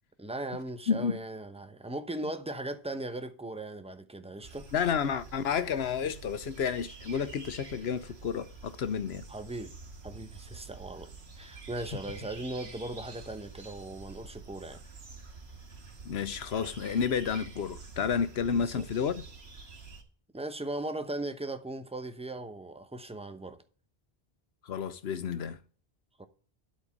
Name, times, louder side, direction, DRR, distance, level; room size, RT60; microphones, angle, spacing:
voice 1, 0.2-4.7 9.3-9.7 10.0-11.1 11.3-14.8 18.5-18.8 20.3-23.6 26.2-26.3, right 2 dB, 5° right, 0.7 m, -38 dB
voice 2, 0.9-1.2 4.7-9.2 16.0-19.2 24.6-25.6, left 7 dB, 80° left, 1.1 m, -31 dB
sound 1, 4.4-20.0, right 4 dB, 90° right, 2.0 m, -48 dB
12.0 x 4.4 x 7.2 m
omnidirectional pair, 1.0 m